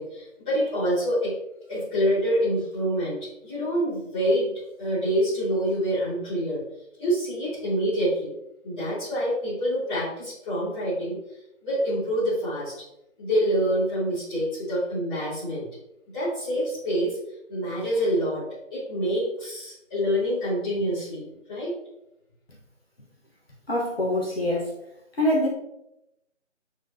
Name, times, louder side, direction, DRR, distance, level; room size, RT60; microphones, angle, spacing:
voice 1, 0.0-1.3 1.7-4.5 4.8-6.6 7.0-8.3 8.6-11.2 11.6-12.8 13.2-15.7 16.1-17.2 17.5-18.4 18.7-21.2 21.5-21.7, equal, 5° left, -16 dB, 2.2 m, -26 dB
voice 2, 23.7-24.7 25.2-25.5, left 1 dB, 50° left, -3 dB, 1.4 m, -24 dB
7.7 x 4.8 x 2.7 m, 0.85 s
figure-of-eight pair, 165°, 38 cm